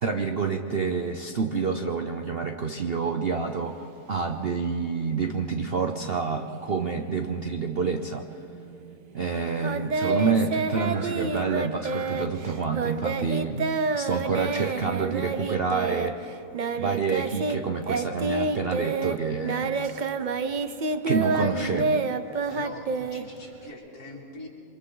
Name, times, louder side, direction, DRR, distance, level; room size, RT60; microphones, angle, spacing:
voice 1, 0.0-8.3 9.1-16.2 16.8-19.7 21.0-22.0, right 5 dB, 50° right, 5 dB, 0.8 m, -28 dB
Singing, 3.3-13.8, right 7 dB, 90° right, 1.7 m, -50 dB
Singing 2, 9.6-17.6 17.8-23.7, right 4 dB, 75° right, 0.4 m, -28 dB
voice 2, 21.2-21.6 22.4-24.5, left 1 dB, 60° left, -3 dB, 3.7 m, -42 dB
28.0 x 24.0 x 3.9 m, 2.8 s
omnidirectional pair, 1.9 m